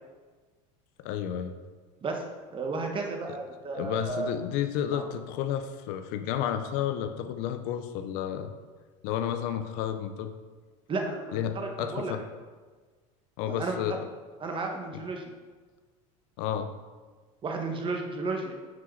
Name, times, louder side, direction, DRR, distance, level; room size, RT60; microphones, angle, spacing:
voice 1, 1.0-1.6 3.3-3.4 3.7-8.5 9.0-10.3 11.3-12.2 13.4-14.1 16.4-16.7, left 9 dB, 65° left, 8 dB, 0.7 m, -31 dB
voice 2, 2.5-4.3 4.9-5.0 10.9-12.1 13.4-14.0 14.4-15.3 17.4-18.5, right 3 dB, 30° right, 2 dB, 1.4 m, -33 dB
6.4 x 4.8 x 5.7 m, 1.4 s
supercardioid pair, 110°, 17 cm